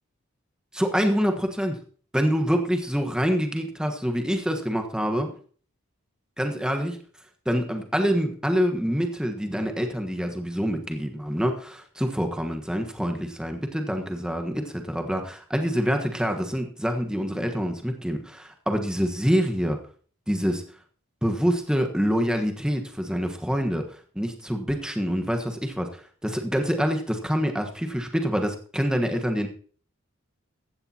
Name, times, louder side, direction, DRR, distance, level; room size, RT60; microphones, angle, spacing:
voice 1, 0.7-1.8 2.1-5.3 6.4-7.0 7.4-19.8 20.3-20.6 21.2-29.5, equal, 5° right, 4 dB, 1.3 m, -26 dB
15.5 x 12.0 x 2.9 m, 0.44 s
head